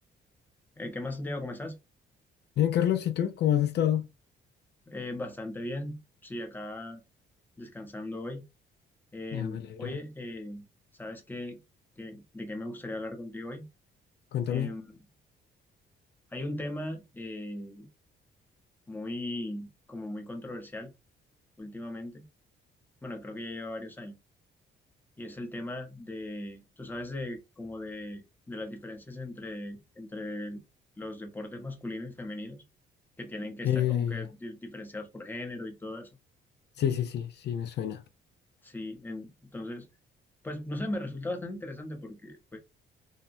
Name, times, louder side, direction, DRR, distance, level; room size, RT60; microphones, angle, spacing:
voice 1, 0.8-1.8 4.9-7.0 7.6-8.4 9.1-10.7 11.0-11.6 12.0-13.7 14.5-15.0 16.3-17.9 18.9-20.9 21.6-22.3 23.0-24.1 25.2-30.6 31.0-32.6 33.2-36.1 38.6-39.9 40.4-42.6, left 1 dB, 10° left, 0.7 m, -38 dB
voice 2, 2.6-4.1 9.3-10.0 14.3-14.7 33.6-34.3 36.8-38.0, left 10 dB, 60° left, 0.4 m, -28 dB
2.8 x 2.0 x 2.5 m
cardioid pair, 90°, 20 cm